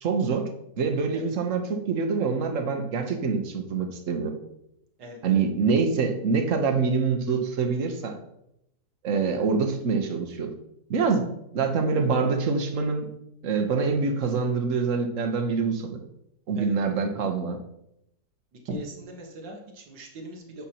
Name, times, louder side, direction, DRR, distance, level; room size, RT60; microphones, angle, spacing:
voice 1, 0.0-0.5 0.8-4.4 5.2-8.2 9.0-10.5 10.9-11.3 11.5-13.1 13.4-16.0 16.5-17.6, right 5 dB, 50° right, 5 dB, 1.2 m, -25 dB
voice 2, 5.0-5.4 16.6-16.7 18.7-20.7, right 1 dB, 85° right, 2 dB, 2.1 m, -39 dB
10.0 x 7.0 x 2.9 m, 0.80 s
omnidirectional pair, 1.9 m